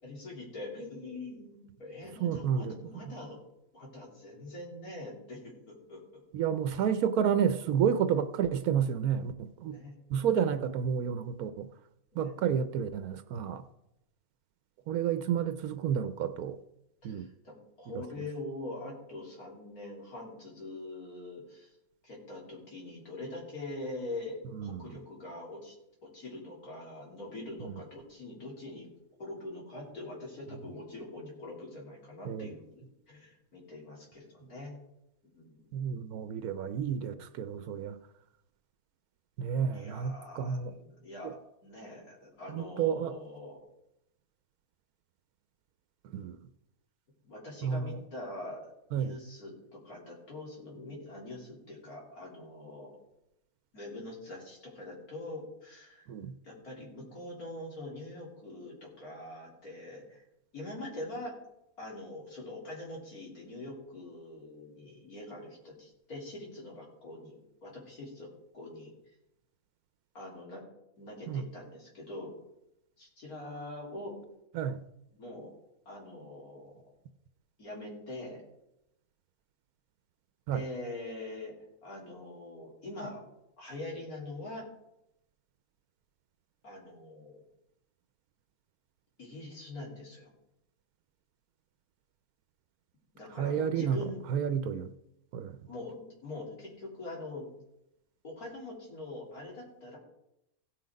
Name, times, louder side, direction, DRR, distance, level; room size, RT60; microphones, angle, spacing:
voice 1, 0.0-3.4 3.7-6.2 9.7-9.9 12.1-12.5 17.0-21.7 22.0-25.7 26.1-28.9 29.2-34.8 35.2-35.7 39.7-41.4 41.6-43.6 47.2-53.0 53.7-56.1 56.4-60.2 60.5-61.3 61.8-68.9 70.1-70.6 71.0-72.3 73.0-74.1 75.1-75.5 75.9-76.9 77.6-78.4 80.5-81.5 81.8-83.2 83.6-84.7 86.6-87.4 89.2-90.3 93.1-94.2 95.7-97.5 98.2-100.0, left 2 dB, 80° left, -3 dB, 3.8 m, -43 dB
voice 2, 2.2-2.8 6.3-9.8 10.1-11.7 12.2-13.6 14.9-16.6 17.0-17.3 24.5-24.9 32.2-32.5 35.7-38.0 39.4-40.7 41.2-41.3 42.5-43.1 46.1-46.4 47.6-48.0 48.9-49.2 56.1-56.3 71.3-71.4 74.5-74.8 80.5-80.6 93.4-94.0 94.3-94.9 95.3-95.6, right 8 dB, 85° right, 11 dB, 1.1 m, -30 dB
16.0 x 5.9 x 5.2 m, 0.84 s
omnidirectional pair, 1.5 m